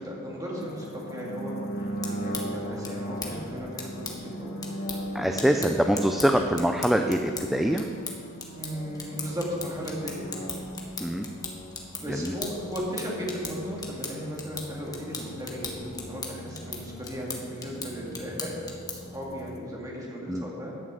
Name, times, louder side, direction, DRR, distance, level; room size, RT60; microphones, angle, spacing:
voice 1, 0.0-4.6 5.5-5.7 8.4-10.4 12.0-20.7, equal, 15° right, -4 dB, 2.4 m, -36 dB
sound 1, 0.5-19.6, equal, 45° left, 1.2 m, -39 dB
sound 2, 2.0-19.2, left 3 dB, 15° left, 1.3 m, -40 dB
voice 2, 5.1-7.9 11.0-11.3 12.1-12.3 20.3-20.5, equal, ahead, 4 dB, 0.4 m, -24 dB
11.0 x 6.3 x 7.9 m, 2.2 s
head